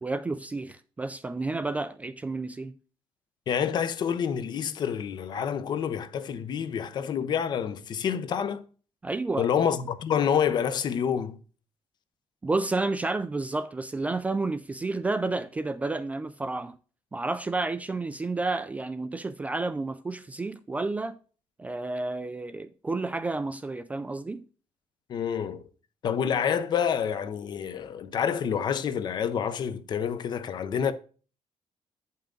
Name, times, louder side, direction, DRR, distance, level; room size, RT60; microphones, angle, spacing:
voice 1, 0.0-2.8 9.0-9.5 12.4-16.8 17.1-21.2 21.6-24.5, right 3 dB, 15° right, 0.3 m, -31 dB
voice 2, 3.5-8.6 9.4-11.4 25.1-25.6 26.0-30.9, left 8 dB, 45° left, 0.6 m, -28 dB
8.8 x 5.7 x 3.8 m
cardioid pair, 180°, 11 cm